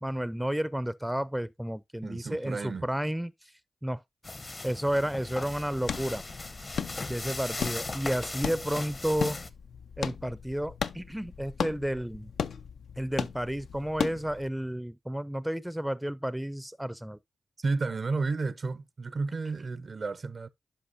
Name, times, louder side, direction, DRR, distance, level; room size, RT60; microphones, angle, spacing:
voice 1, 0.0-3.3 3.8-4.0 4.6-6.2 7.1-9.4 10.0-12.3 13.0-17.2, equal, 5° right, 0.5 m, -31 dB
voice 2, 2.0-2.9 17.6-20.5, right 3 dB, 55° right, 0.5 m, -32 dB
sound 1, 4.2-9.5, left 2 dB, 40° left, 0.8 m, -38 dB
sound 2, 5.5-14.5, left 7 dB, 80° left, 0.4 m, -37 dB
10.0 x 5.5 x 2.6 m
cardioid pair, 50°, 0 cm